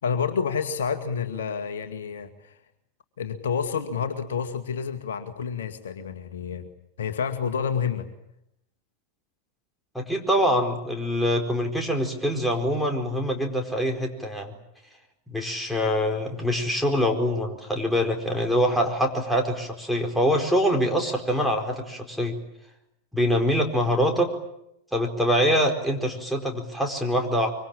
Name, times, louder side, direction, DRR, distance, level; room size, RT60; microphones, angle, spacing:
voice 1, 0.0-2.6 3.2-6.7 7.0-8.1, left 6 dB, 65° left, 7 dB, 2.0 m, -29 dB
voice 2, 9.9-14.5 15.3-22.4 23.1-24.3 24.9-27.5, equal, ahead, 2 dB, 4.6 m, -24 dB
25.0 x 24.5 x 8.7 m, 0.82 s
figure-of-eight pair, 90°, 0 cm